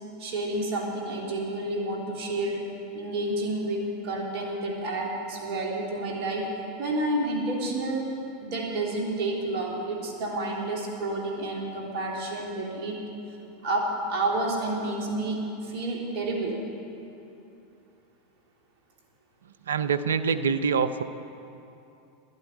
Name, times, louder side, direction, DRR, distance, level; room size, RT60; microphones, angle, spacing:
voice 1, 0.2-2.7 2.9-6.5 6.8-8.1 8.4-13.0 13.6-16.6, right 2 dB, 60° right, -1 dB, 3.0 m, -30 dB
voice 2, 19.7-21.0, right 6 dB, 85° right, 12 dB, 0.5 m, -25 dB
11.5 x 8.1 x 10.0 m, 2.8 s
hypercardioid pair, 95°, 0 cm